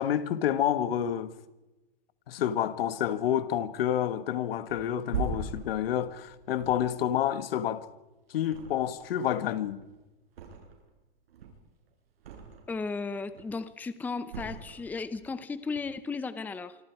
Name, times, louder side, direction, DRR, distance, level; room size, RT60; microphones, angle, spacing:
voice 1, 0.0-1.3 2.3-7.9 8.3-9.8, left 10 dB, 75° left, 1.9 m, -29 dB
Thump thud, 4.7-8.0 8.4-9.2 9.5-11.0 11.3-12.8 13.2-13.7 14.3-15.3 15.6-15.8, right 5 dB, 85° right, 7.7 m, -40 dB
voice 2, 12.7-16.8, left 4 dB, 5° left, 0.7 m, -35 dB
27.0 x 25.5 x 4.8 m
supercardioid pair, 160°, 29 cm